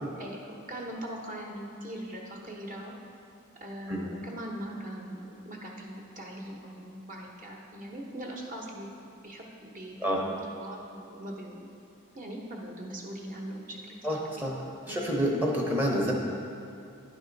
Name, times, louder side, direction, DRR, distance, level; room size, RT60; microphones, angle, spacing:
voice 1, 0.2-2.9 3.6-11.7 12.1-14.5 14.9-15.0, right 1 dB, 35° right, -1 dB, 1.0 m, -41 dB
voice 2, 14.0-14.6 14.9-16.1, equal, 10° right, -2 dB, 0.8 m, -28 dB
10.0 x 3.7 x 5.2 m, 2.7 s
head